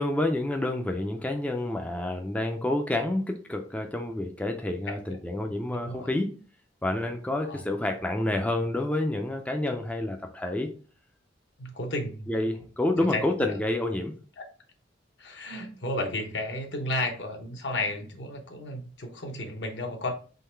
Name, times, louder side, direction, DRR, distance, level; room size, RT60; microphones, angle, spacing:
voice 1, 0.0-6.3 6.8-10.7 12.3-14.1, left 1 dB, 10° left, 3 dB, 0.4 m, -28 dB
voice 2, 5.7-6.1 7.4-7.6 9.7-9.8 11.6-12.4 13.1-13.2 14.4-14.5 15.2-20.1, left 1 dB, 65° left, 3 dB, 1.0 m, -33 dB
3.8 x 3.0 x 4.3 m, 0.40 s
head